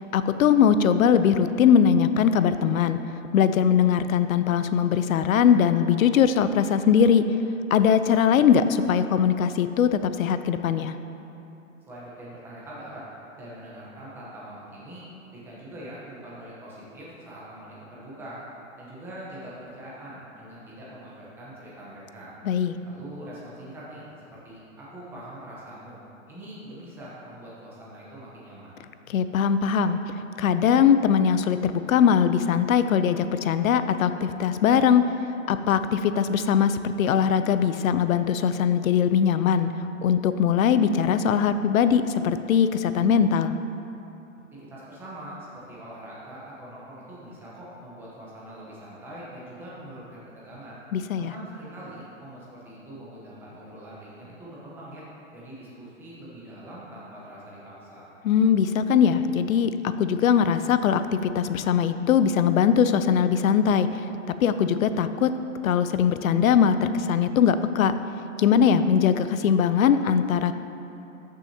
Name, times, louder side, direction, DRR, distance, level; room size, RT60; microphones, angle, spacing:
voice 1, 0.1-3.0 3.3-7.2 7.7-10.9 22.5-22.7 29.1-30.0 30.4-35.0 35.5-39.7 40.0-43.5 50.9-51.3 58.2-59.7 60.0-64.1 64.4-65.3 65.6-68.0 68.4-70.5, left 7 dB, 75° left, 11 dB, 0.6 m, -21 dB
voice 2, 11.8-13.1 13.4-18.4 18.7-22.3 22.8-26.0 26.3-28.8 44.5-50.8 51.2-55.0 55.3-58.0, right 1 dB, 5° right, -7 dB, 0.9 m, -43 dB
13.0 x 6.3 x 2.8 m, 2.9 s
hypercardioid pair, 165°, 41 cm